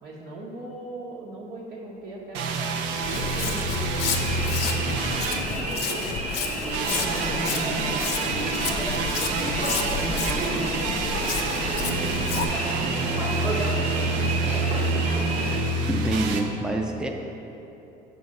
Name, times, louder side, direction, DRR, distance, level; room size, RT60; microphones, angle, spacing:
voice 1, 0.0-6.2 6.9-7.9 8.4-11.0 11.8-14.8, right 2 dB, 65° right, -6 dB, 1.1 m, -39 dB
sound 1, 2.3-6.1 6.7-16.4, right 3 dB, 90° right, 0.7 m, -28 dB
Walk footsteps, 3.0-12.4, left 6 dB, 70° left, 0.7 m, -31 dB
sound 2, 4.1-15.6, right 1 dB, 35° right, 1.1 m, -31 dB
voice 2, 15.9-17.1, right 1 dB, 5° right, 1 dB, 0.5 m, -26 dB
6.8 x 4.0 x 6.5 m, 3.0 s
cardioid pair, 120°, 18 cm